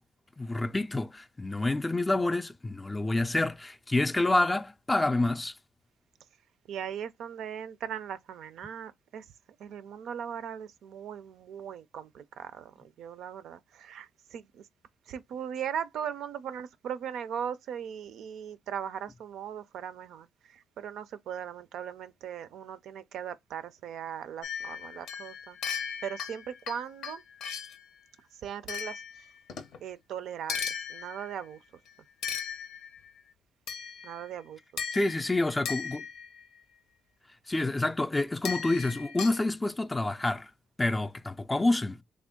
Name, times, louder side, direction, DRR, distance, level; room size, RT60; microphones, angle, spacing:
voice 1, 0.4-5.5 34.9-36.0 37.5-40.5 40.8-42.0, left 2 dB, 15° left, 0.3 m, -28 dB
voice 2, 6.7-9.3 9.6-14.7 15.1-25.6 26.0-27.2 28.3-29.3 29.8-30.6 30.9-31.6 34.0-34.6, right 8 dB, 75° right, 0.4 m, -39 dB
sound 1, 24.4-27.9 28.7-29.8 30.5-31.4 32.2-33.1 33.7-34.3 34.8-36.4 38.4-39.4, left 7 dB, 80° left, 0.6 m, -37 dB
3.4 x 2.1 x 3.6 m
cardioid pair, 90°, 0 cm